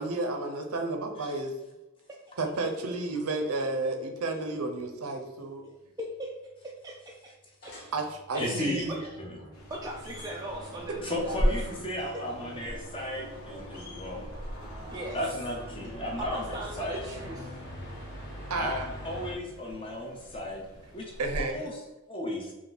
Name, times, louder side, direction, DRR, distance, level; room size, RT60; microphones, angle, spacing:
voice 1, 0.0-1.5 2.4-5.6 7.9-9.0 11.1-11.2 18.5-18.9 21.2-21.7, right 2 dB, 85° right, 3 dB, 0.6 m, -32 dB
voice 2, 5.6-6.3 6.6-7.3 7.6-8.0 8.3-8.5 8.9-9.0 9.7-11.5 12.0-12.2 12.7-12.8 14.9-15.3 16.2-17.5, right 1 dB, 15° right, -3 dB, 0.3 m, -39 dB
sound 1, 7.6-19.3, equal, 50° left, 1.1 m, -44 dB
voice 3, 8.4-8.8 9.2-9.4 11.0-14.3 15.1-17.0 18.6-20.6 20.9-21.7 22.1-22.5, left 1 dB, 25° left, 0 dB, 0.7 m, -35 dB
sound 2, 9.5-21.7, equal, 80° left, 0.8 m, -38 dB
3.5 x 2.6 x 3.9 m, 1.0 s
head